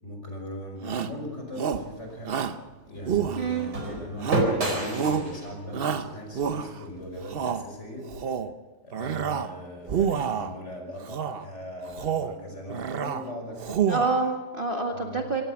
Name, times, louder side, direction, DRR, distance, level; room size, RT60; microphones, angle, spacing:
voice 1, 0.0-2.4 2.9-8.3 8.8-13.8 14.9-15.3, left 1 dB, 45° left, 2 dB, 5.7 m, -39 dB
Shout, 0.8-1.2 1.6-1.9 2.2-2.6 3.1-3.7 4.2-4.6 4.9-5.3 5.7-6.8 7.2-7.6 8.1-8.5 8.9-9.5 9.8-10.5 11.1-11.4 11.9-12.4 12.7-13.2 13.6-14.3, right 7 dB, 50° right, 0.7 m, -28 dB
sound 1, 1.5-7.7, right 1 dB, 85° right, 5.0 m, -32 dB
voice 2, 3.4-3.7 13.9-15.4, right 3 dB, 35° right, 2 dB, 1.8 m, -27 dB
26.0 x 17.0 x 5.9 m, 1.3 s
omnidirectional pair, 1.7 m